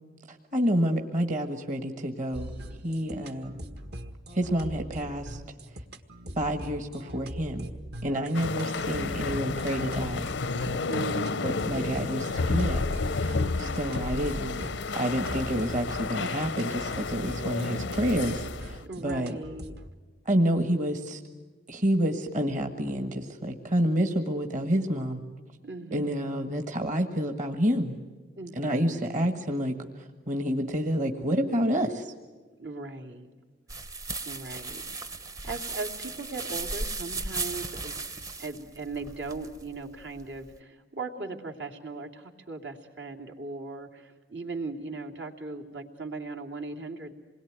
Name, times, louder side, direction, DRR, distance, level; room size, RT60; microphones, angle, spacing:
voice 1, 0.3-2.5 2.8-3.6 4.3-5.4 6.4-7.7 8.0-10.3 10.5-10.7 11.4-14.7 14.9-19.4 20.2-21.2 21.7-25.2 25.9-28.0 28.6-32.1, equal, 45° right, 5 dB, 1.6 m, -29 dB
sound 1, 2.3-19.9, equal, 60° right, 1.7 m, -41 dB
voice 2, 3.1-3.7 8.1-8.5 10.9-11.7 13.4-13.9 18.8-19.8 25.6-26.5 28.4-29.3 32.6-33.3 34.2-34.9 35.2-38.0 38.4-47.1, right 3 dB, 75° right, 3 dB, 2.9 m, -39 dB
sound 2, 8.3-18.8, left 3 dB, 90° left, 0.7 m, -31 dB
sound 3, 33.7-40.6, right 3 dB, 20° right, 0.8 m, -36 dB
27.5 x 21.5 x 9.4 m, 1.3 s
head